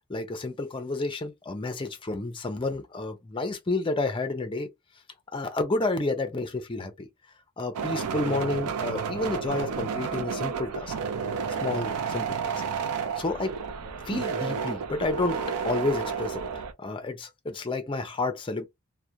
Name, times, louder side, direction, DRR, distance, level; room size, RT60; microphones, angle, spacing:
voice 1, 0.1-4.7 5.3-7.1 7.6-10.9 11.6-12.6 13.2-13.5 14.0-15.4 15.6-18.7, left 2 dB, 20° left, 0.4 m, -30 dB
sound 1, 7.7-16.7, right 6 dB, 85° right, 0.4 m, -31 dB
2.4 x 2.1 x 2.7 m
head